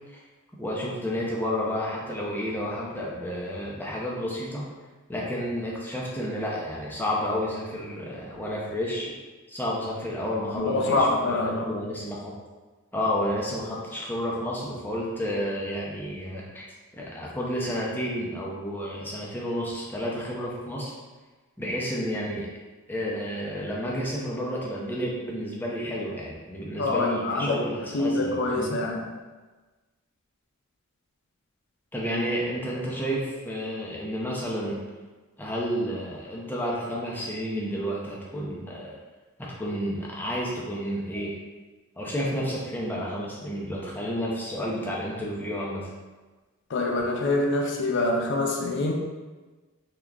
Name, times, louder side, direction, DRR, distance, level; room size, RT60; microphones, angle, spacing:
voice 1, 0.6-4.6 5.1-9.2 9.5-12.3 12.9-16.6 17.0-20.9 21.6-22.5 22.9-28.8 31.9-34.8 35.4-38.9 39.4-41.4 42.0-45.9, equal, 10° left, -4 dB, 0.5 m, -31 dB
voice 2, 10.6-11.7 26.8-27.6 27.9-29.0 46.7-48.9, left 2 dB, 60° left, 0 dB, 0.5 m, -25 dB
3.5 x 2.9 x 2.3 m, 1.3 s
head